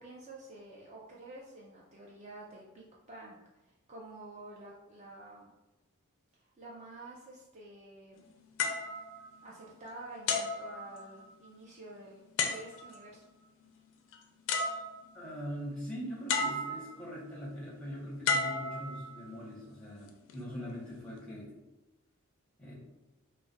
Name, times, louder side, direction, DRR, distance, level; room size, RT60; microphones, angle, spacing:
voice 1, 0.0-5.5 6.4-8.2 9.4-13.2, right 2 dB, 30° right, -4 dB, 0.4 m, -49 dB
sound 1, 8.6-9.8 10.3-11.4 12.4-13.1 14.1-14.2 14.5-15.3 16.3-17.1 18.2-19.4 20.1-20.3, left 4 dB, 60° left, 0.4 m, -34 dB
voice 2, 15.1-21.6 22.6-22.7, equal, 5° left, -6 dB, 0.8 m, -42 dB
2.3 x 2.0 x 3.8 m, 1.0 s
head